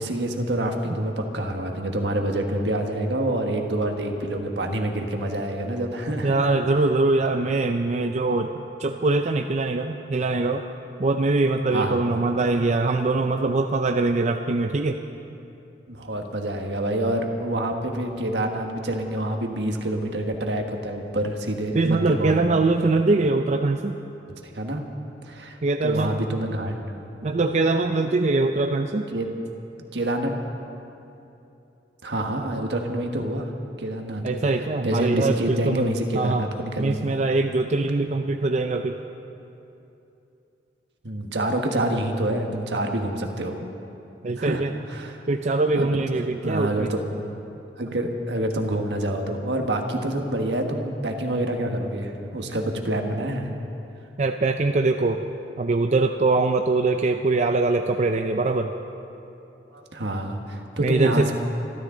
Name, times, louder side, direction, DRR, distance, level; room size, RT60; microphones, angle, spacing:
voice 1, 0.0-6.4 11.7-12.0 15.2-15.3 15.9-22.4 24.5-24.8 25.2-26.8 29.1-29.3 29.9-30.4 32.0-33.5 33.8-34.2 34.8-37.1 41.0-43.6 44.4-44.6 44.9-45.2 45.7-45.9 46.4-47.0 47.8-53.5 59.7-61.3, right 1 dB, 75° right, 3 dB, 1.5 m, -27 dB
voice 2, 6.2-10.6 11.0-15.0 21.7-24.0 25.6-26.2 27.2-29.1 34.2-35.9 36.1-36.4 36.8-39.0 44.2-44.7 45.3-46.9 54.2-55.2 55.6-58.7 60.8-61.3, right 3 dB, 40° right, 5 dB, 0.5 m, -22 dB
26.0 x 13.0 x 3.9 m, 2.8 s
head